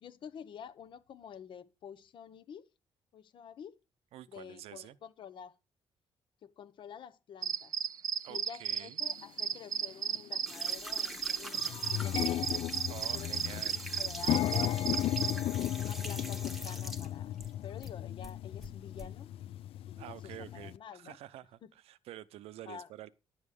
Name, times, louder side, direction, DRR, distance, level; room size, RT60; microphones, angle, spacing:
voice 1, 0.0-2.7 3.1-3.8 4.3-5.6 6.4-7.7 8.3-12.5 13.1-13.4 13.9-14.8 15.2-15.4 15.7-17.4 17.6-19.3 19.8-21.2 22.7-22.9, left 8 dB, 55° left, 0.8 m, -48 dB
voice 2, 4.1-5.0 8.2-9.0 12.9-13.8 20.0-23.1, right 13 dB, 90° right, 0.7 m, -48 dB
sound 1, 7.4-15.4, right 7 dB, 40° right, 0.5 m, -35 dB
sound 2, 9.2-9.3 10.1-10.3 10.7-10.8 11.1-20.8, left 12 dB, 70° left, 0.5 m, -35 dB
sound 3, 10.4-17.9 18.2-19.1, right 1 dB, ahead, 1.2 m, -45 dB
10.5 x 7.4 x 4.9 m
cardioid pair, 140°, 10 cm